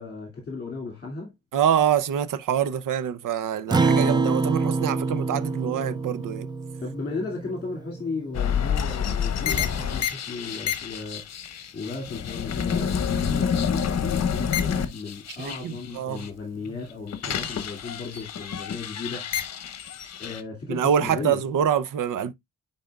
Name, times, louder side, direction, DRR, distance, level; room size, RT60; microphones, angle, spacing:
voice 1, 0.0-1.3 6.8-11.2 11.7-19.3 20.2-21.4, left 4 dB, 30° left, 2.3 m, -35 dB
voice 2, 1.5-6.5 15.4-16.3 17.2-17.5 20.7-22.3, right 9 dB, 75° right, 0.7 m, -25 dB
Acoustic guitar, 3.7-8.4, right 4 dB, 15° right, 0.3 m, -26 dB
sound 1, 8.3-16.3 16.7-20.4, left 7 dB, 55° left, 1.0 m, -28 dB
10.0 x 4.0 x 2.3 m
wide cardioid pair, 150°, 32 cm